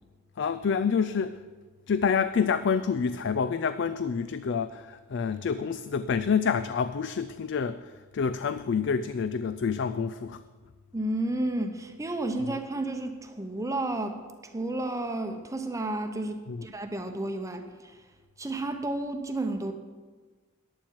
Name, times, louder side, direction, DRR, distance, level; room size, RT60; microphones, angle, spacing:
voice 1, 0.4-1.4 1.9-10.4 16.5-16.7, left 6 dB, 55° left, 0.4 m, -28 dB
voice 2, 10.9-18.0 18.4-19.7, right 2 dB, 15° right, 0.8 m, -32 dB
14.5 x 10.5 x 4.6 m
head